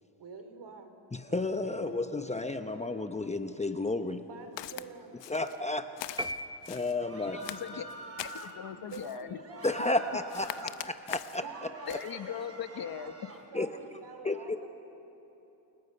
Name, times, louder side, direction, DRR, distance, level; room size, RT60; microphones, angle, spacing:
voice 1, 0.2-0.9 1.3-2.0 4.2-5.1 8.7-10.0 11.4-14.7, right 5 dB, 65° right, 6 dB, 3.4 m, -48 dB
voice 2, 1.1-4.2 5.3-5.9 6.7-7.5 9.6-11.4 13.5-13.7 14.2-14.6, left 2 dB, 15° left, 7 dB, 1.0 m, -32 dB
Walk footsteps, 4.6-4.9 5.2-5.6 6.0-7.0 7.4-8.5 8.9-9.2 9.6-10.0 10.3-11.4 11.9-12.1, left 13 dB, 70° left, 0.8 m, -42 dB
sound 1, 6.2-7.4, equal, 10° right, 0.8 m, -38 dB
sound 2, 7.0-8.7 9.4-10.7 11.1-13.4, right 1 dB, 35° right, 3.8 m, -47 dB
voice 3, 7.2-7.8 8.2-9.4 11.9-13.1, left 8 dB, 55° left, 9 dB, 1.4 m, -39 dB
29.5 x 29.5 x 5.5 m, 3.0 s
cardioid pair, 100°, 45 cm